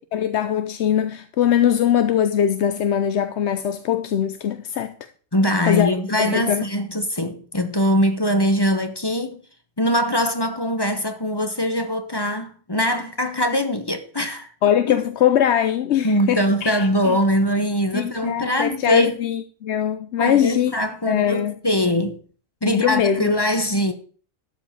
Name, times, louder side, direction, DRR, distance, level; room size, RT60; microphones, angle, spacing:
voice 1, 0.1-4.9 5.7-6.6 14.6-17.2 17.9-20.7 21.1-21.5 22.7-23.4, left 9 dB, 60° left, 0.8 m, -21 dB
voice 2, 5.3-9.4 9.8-14.5 16.0-19.1 20.2-22.2 22.6-23.9, equal, 20° left, 0.9 m, -22 dB
12.5 x 4.8 x 7.5 m
omnidirectional pair, 1.5 m